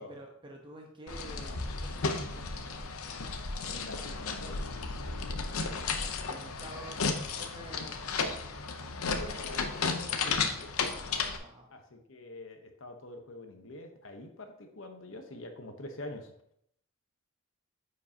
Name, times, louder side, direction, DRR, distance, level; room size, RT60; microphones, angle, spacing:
voice 1, 0.0-2.8 6.3-8.1 9.1-9.6 11.4-11.8, right 1 dB, 20° right, 0 dB, 0.9 m, -49 dB
sound 1, 1.1-11.4, left 4 dB, 85° left, 0.8 m, -34 dB
voice 2, 3.6-4.5 6.7-6.8 9.1-10.8 11.7-16.3, left 1 dB, 60° left, 5 dB, 1.0 m, -46 dB
9.4 x 5.1 x 2.8 m, 0.72 s
head